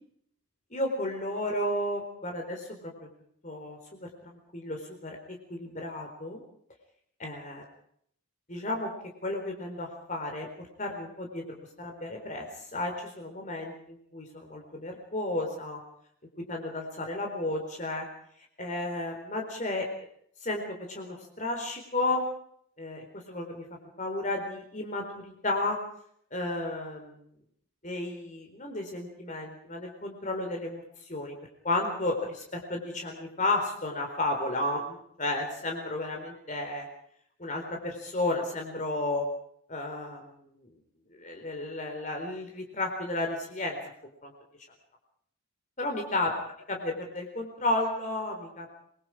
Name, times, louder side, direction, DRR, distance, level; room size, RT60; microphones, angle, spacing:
voice 1, 0.7-2.9 3.4-5.2 5.5-6.4 7.2-7.6 8.5-8.9 9.2-11.4 11.8-15.8 16.4-18.1 18.6-19.9 20.4-22.3 22.8-23.6 24.0-25.8 26.3-27.2 27.8-31.4 31.6-36.9 37.4-39.2 39.7-40.7 41.1-43.8 44.2-44.3 45.8-46.3 46.7-48.7, left 2 dB, 35° left, 2 dB, 4.0 m, -33 dB
26.5 x 22.0 x 4.9 m, 0.67 s
head